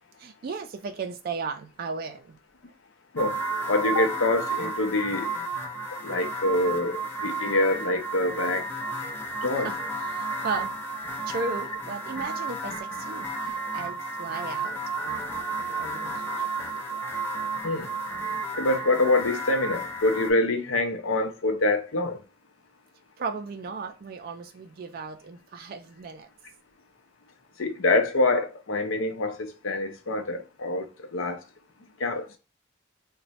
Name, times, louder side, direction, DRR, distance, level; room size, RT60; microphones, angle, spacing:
voice 1, 0.2-2.4 9.6-9.8 10.0-10.8 11.3-16.5 16.8-17.0 23.2-26.3, right 4 dB, 45° right, 0.3 m, -36 dB
sound 1, 3.2-20.3, right 2 dB, 10° left, 0.5 m, -32 dB
voice 2, 3.7-5.3 6.0-8.7 9.4-9.7 17.6-17.9 18.6-22.2 27.6-31.4 32.0-32.3, left 2 dB, 80° left, 0.6 m, -25 dB
2.9 x 2.1 x 4.1 m
head